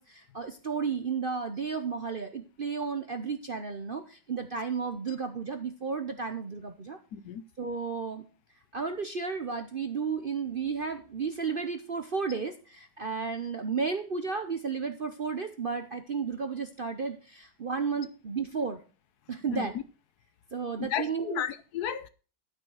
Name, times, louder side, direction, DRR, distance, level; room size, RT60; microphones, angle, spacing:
voice 1, 0.0-7.0 7.6-8.2 8.7-18.8 19.3-19.7 20.5-21.4, right 5 dB, 45° right, 0.7 m, -33 dB
voice 2, 7.1-7.4 19.5-19.7 20.8-22.1, left 10 dB, 70° left, 1.2 m, -33 dB
12.0 x 6.1 x 6.4 m
omnidirectional pair, 1.9 m